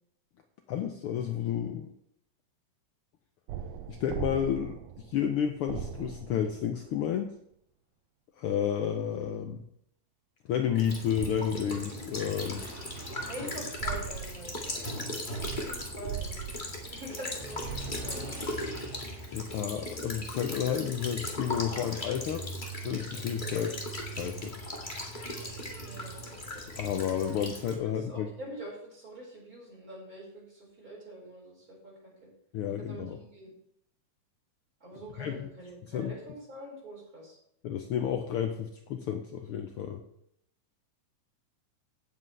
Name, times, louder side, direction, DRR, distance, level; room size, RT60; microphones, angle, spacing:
voice 1, 0.7-1.9 3.9-7.3 8.4-9.6 10.5-12.6 19.3-22.4 22.8-23.8 24.1-24.5 26.8-28.3 32.5-33.2 35.2-35.5 35.9-36.1 37.6-40.0, left 9 dB, 80° left, 5 dB, 1.2 m, -31 dB
sound 1, 3.5-7.2 13.8-18.7, right 9 dB, 75° right, 1.7 m, -40 dB
Child speech kid speaking / Bird vocalization bird call bird song / Stream, 10.7-27.7, left 1 dB, 20° left, 1.4 m, -38 dB
sound 2, 12.4-23.4, right 2 dB, 60° right, 2.2 m, -49 dB
voice 2, 13.0-16.4 16.9-18.6 25.8-26.3 27.9-32.3 32.8-33.5 34.8-37.4, right 1 dB, 25° right, -4 dB, 5.4 m, -45 dB
17.0 x 7.6 x 3.3 m, 0.70 s
omnidirectional pair, 3.4 m